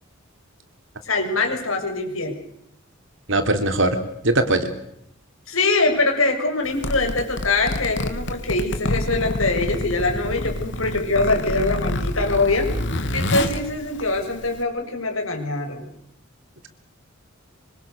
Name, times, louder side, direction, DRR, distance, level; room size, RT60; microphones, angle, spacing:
voice 1, 1.1-2.4 5.5-12.7 13.1-15.9, left 3 dB, 85° left, 3 dB, 6.9 m, -23 dB
voice 2, 3.3-4.0 4.2-4.7, right 2 dB, 65° right, 8 dB, 3.5 m, -20 dB
Zipper (clothing), 6.6-14.6, left 1 dB, 60° left, 2.8 m, -27 dB
26.0 x 25.0 x 6.7 m, 0.75 s
head